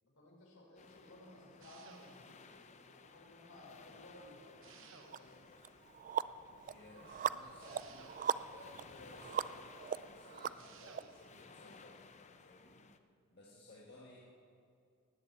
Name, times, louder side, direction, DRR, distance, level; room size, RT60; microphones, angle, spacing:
voice 1, 0.0-5.5 13.9-14.1, left 1 dB, 75° left, -2 dB, 4.4 m, -58 dB
sound 1, 0.8-13.0, left 4 dB, 35° left, 0.6 m, -59 dB
sound 2, 1.6-2.5 4.6-5.6 7.6-8.6 10.6-11.4, right 6 dB, 65° right, 1.0 m, -59 dB
sound 3, 5.1-5.2 5.6-11.0, right 8 dB, 40° right, 0.3 m, -39 dB
voice 2, 6.7-9.8 10.1-12.9 13.3-14.2, left 2 dB, 50° left, -4 dB, 1.6 m, -58 dB
18.5 x 7.2 x 8.2 m, 2.4 s
head